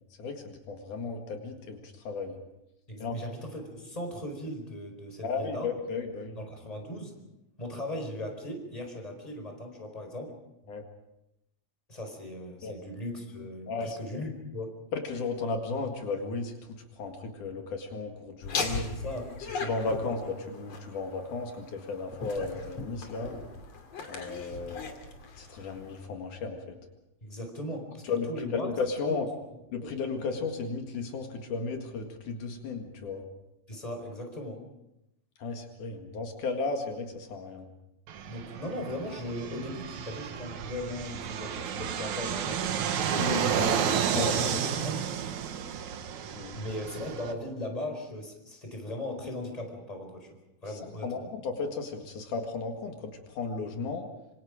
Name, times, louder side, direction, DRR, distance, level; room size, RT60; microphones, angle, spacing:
voice 1, 0.2-2.4 3.0-3.2 5.2-6.4 10.7-10.8 12.6-12.8 13.7-14.2 14.9-18.9 19.5-23.4 24.1-24.8 25.4-26.8 28.0-29.3 29.7-33.2 35.4-37.7 43.1-43.7 44.2-44.4 46.4-46.6 50.7-54.1, left 4 dB, 75° left, 3 dB, 3.4 m, -34 dB
voice 2, 2.9-5.7 6.3-7.1 7.6-10.3 11.9-14.8 18.9-19.3 27.2-28.7 29.8-29.9 33.7-34.6 38.3-43.7 44.1-45.0 46.5-50.3 50.6-51.3, left 1 dB, 10° left, 4 dB, 4.5 m, -38 dB
Laughter, 18.4-26.1, left 4 dB, 55° left, 3.6 m, -38 dB
Fixed-wing aircraft airplane, 38.1-47.3, right 8 dB, 70° right, 2.7 m, -31 dB
26.5 x 25.5 x 5.1 m, 0.87 s
omnidirectional pair, 3.6 m